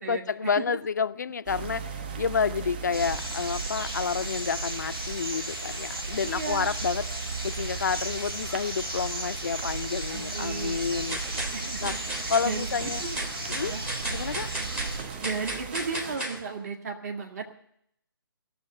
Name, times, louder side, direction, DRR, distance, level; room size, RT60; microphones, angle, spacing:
voice 1, 0.1-11.4 11.8-12.0 12.3-13.1 13.5-13.8 14.1-14.5, left 6 dB, 50° left, 14 dB, 0.5 m, -30 dB
sound 1, 1.5-16.2, right 6 dB, 25° right, 0.6 m, -42 dB
sound 2, 2.9-15.0, right 2 dB, 75° right, 7.8 m, -34 dB
voice 2, 6.1-6.7 10.1-12.7 13.0-13.2 13.6-13.8 15.2-17.5, right 5 dB, 45° right, 2 dB, 1.9 m, -35 dB
sound 3, 10.2-10.7 11.1-16.4, right 1 dB, 10° right, 1.0 m, -35 dB
16.0 x 6.8 x 9.1 m, 0.70 s
figure-of-eight pair, 140°, 12 cm